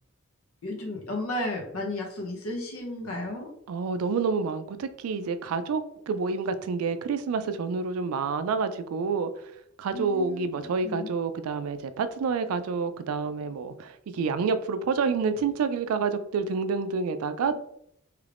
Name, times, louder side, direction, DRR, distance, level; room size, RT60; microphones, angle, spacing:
voice 1, 0.6-3.5 9.9-10.5 10.8-11.1, left 1 dB, 85° left, 1 dB, 0.8 m, -33 dB
voice 2, 3.7-9.3 9.8-17.5, right 5 dB, 90° right, 11 dB, 0.3 m, -28 dB
3.1 x 2.4 x 3.3 m, 0.74 s
head